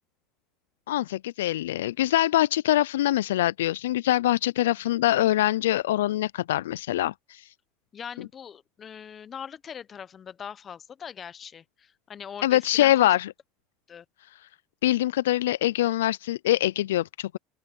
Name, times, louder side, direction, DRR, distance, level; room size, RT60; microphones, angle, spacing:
voice 1, 0.9-7.4 12.4-13.3 14.8-17.4, left 14 dB, 85° left, 0.3 m, -24 dB
voice 2, 7.9-13.2 13.9-14.0, left 7 dB, 35° left, 0.9 m, -41 dB
open air
hypercardioid pair, 90°, 0 cm